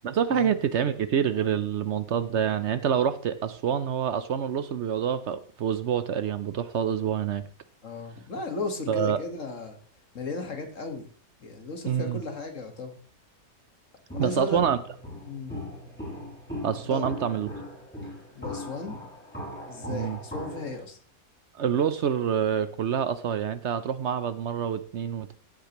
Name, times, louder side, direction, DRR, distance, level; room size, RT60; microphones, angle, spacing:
voice 1, 0.0-7.4 8.9-9.2 11.9-12.2 14.2-14.8 16.6-17.5 19.9-20.2 21.6-25.3, right 8 dB, 60° right, 13 dB, 0.9 m, -27 dB
voice 2, 7.8-9.8 10.1-11.1 11.4-13.0 14.1-14.6 15.3-15.6 16.9-17.0 18.4-19.1 19.7-21.0, left 3 dB, 65° left, 5 dB, 2.0 m, -35 dB
Walk footsteps, 14.1-20.8, left 1 dB, 10° left, 5.1 m, -39 dB
16.0 x 8.4 x 3.0 m, 0.41 s
omnidirectional pair, 1.4 m